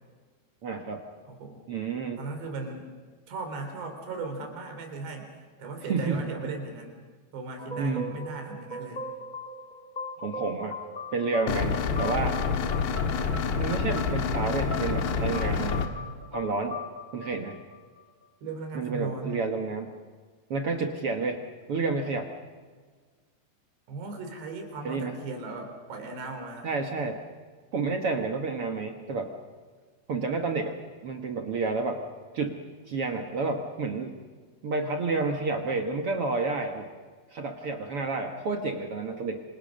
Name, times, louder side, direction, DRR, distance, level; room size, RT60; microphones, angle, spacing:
voice 1, 0.6-1.0 1.7-2.2 5.9-6.2 7.8-8.1 10.2-10.8 11.1-12.4 13.6-15.8 16.3-16.8 17.1-17.5 18.7-19.9 20.5-21.4 21.7-22.3 24.8-25.2 26.6-27.2 27.7-29.3 30.1-30.8 31.0-32.0 32.3-32.6 32.9-34.2 34.6-36.9 37.3-39.4, right 3 dB, 60° right, 4 dB, 1.5 m, -30 dB
voice 2, 1.3-1.6 2.2-2.9 3.3-5.3 5.6-7.0 7.3-9.0 18.4-19.4 23.9-26.7, right 3 dB, 90° right, 4 dB, 5.8 m, -37 dB
sound 1, 7.6-18.2, left 2 dB, 20° left, 1.1 m, -40 dB
sound 2, 11.5-15.9, left 5 dB, 85° left, 3.8 m, -27 dB
27.0 x 26.0 x 6.5 m, 1.5 s
omnidirectional pair, 4.7 m